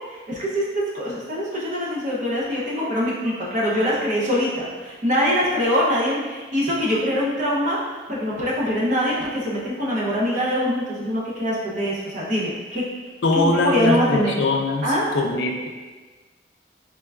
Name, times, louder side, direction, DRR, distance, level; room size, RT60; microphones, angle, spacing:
voice 1, 0.1-12.8 13.6-14.4 14.8-15.1, equal, 45° right, -5 dB, 0.8 m, -23 dB
voice 2, 13.2-15.7, left 2 dB, 75° left, 2 dB, 0.4 m, -22 dB
3.7 x 3.3 x 2.4 m, 1.3 s
head